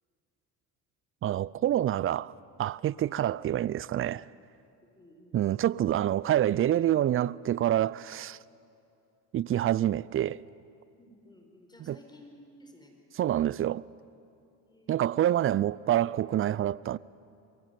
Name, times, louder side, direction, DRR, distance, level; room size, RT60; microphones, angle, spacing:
voice 1, 1.2-2.3 2.6-4.3 5.3-8.4 9.3-10.4 11.9-12.0 13.2-13.8 14.9-17.0, right 12 dB, 30° right, 0.4 m, -27 dB
voice 2, 4.9-5.4 11.0-12.9 14.6-15.1, left 1 dB, 10° left, 4.7 m, -55 dB
23.0 x 16.5 x 9.2 m
hypercardioid pair, 65°, 44 cm